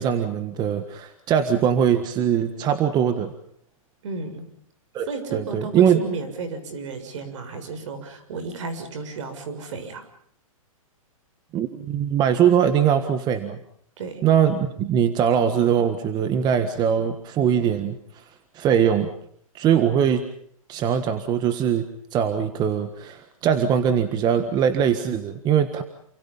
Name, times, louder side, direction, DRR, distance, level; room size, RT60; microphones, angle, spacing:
voice 1, 0.0-3.3 4.9-5.0 5.3-6.0 11.5-13.6 14.2-18.2 18.5-19.1 19.5-20.2 20.7-21.8 22.1-25.8, right 8 dB, 25° right, 10 dB, 1.5 m, -21 dB
voice 2, 4.0-4.4 5.1-10.1 14.0-14.2, right 4 dB, 60° right, 9 dB, 6.8 m, -33 dB
28.5 x 26.0 x 5.6 m, 0.65 s
hypercardioid pair, 140°, 18 cm